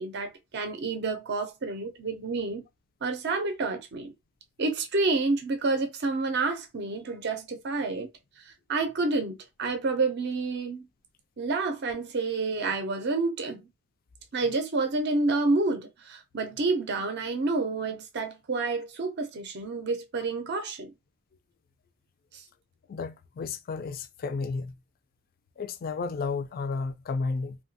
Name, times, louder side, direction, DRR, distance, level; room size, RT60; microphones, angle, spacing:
voice 1, 0.0-2.6 3.0-4.1 4.6-8.1 8.5-10.9 11.4-13.7 14.3-20.9 22.3-22.4, right 3 dB, 55° right, 0.5 m, -29 dB
voice 2, 22.9-24.8 25.6-27.6, left 4 dB, 45° left, 0.3 m, -32 dB
2.8 x 2.2 x 2.6 m
head